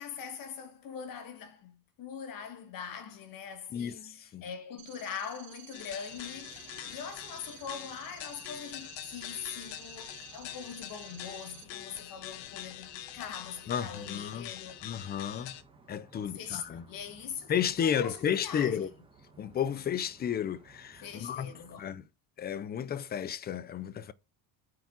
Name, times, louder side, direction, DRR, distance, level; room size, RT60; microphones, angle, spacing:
voice 1, 0.0-14.8 16.1-18.9 21.0-21.8, left 7 dB, 45° left, 1.7 m, -42 dB
voice 2, 3.7-4.4 13.7-14.5 14.8-15.5 15.9-16.8 17.5-18.9 19.4-22.0 22.4-24.1, left 8 dB, 20° left, 0.4 m, -33 dB
sound 1, 4.8-11.6, right 14 dB, 70° right, 2.9 m, -52 dB
sound 2, 5.7-15.6, left 12 dB, 65° left, 1.3 m, -45 dB
sound 3, 6.1-21.7, right 3 dB, 10° right, 1.4 m, -59 dB
9.2 x 4.7 x 6.0 m
cardioid pair, 175°, 46 cm